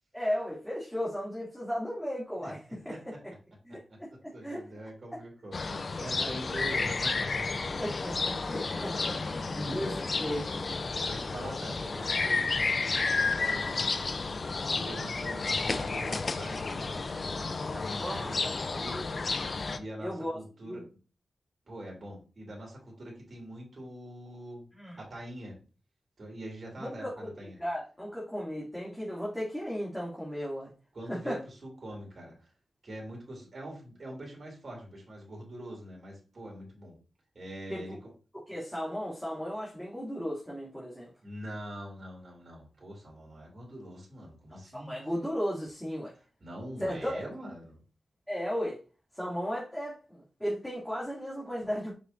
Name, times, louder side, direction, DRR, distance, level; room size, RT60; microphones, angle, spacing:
voice 1, 0.1-2.6 2.8-3.3 3.7-4.6 7.8-9.9 10.2-10.7 18.0-18.3 18.6-19.0 20.0-20.4 20.6-20.8 24.7-25.0 26.8-27.3 27.6-30.7 31.1-31.4 37.7-38.0 38.5-41.1 44.5-46.1 46.8-47.2 48.3-48.8 49.1-51.9, equal, 5° left, -6 dB, 2.7 m, -35 dB
voice 2, 3.9-7.8 9.5-9.8 11.0-13.9 14.7-19.0 19.7-20.8 21.7-24.7 25.0-25.6 26.2-27.6 30.9-32.5 32.8-37.0 37.3-38.0 41.2-45.0 46.1-47.8, right 1 dB, 50° right, -1 dB, 3.2 m, -43 dB
sound 1, 5.5-19.8, left 4 dB, 50° left, 0.7 m, -31 dB
6.2 x 5.7 x 2.7 m, 0.35 s
cardioid pair, 60°, 0 cm